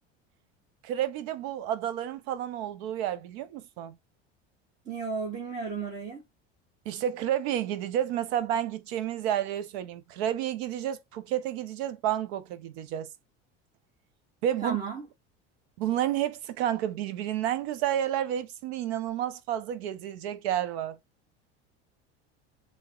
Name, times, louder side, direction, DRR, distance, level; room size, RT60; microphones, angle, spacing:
voice 1, 0.8-4.0 6.8-13.1 14.4-14.8 15.8-21.0, right 11 dB, 80° right, 0.8 m, -30 dB
voice 2, 4.8-6.2 14.6-15.1, right 5 dB, 25° right, 1.4 m, -34 dB
3.6 x 2.9 x 3.8 m
supercardioid pair, 105°, 31 cm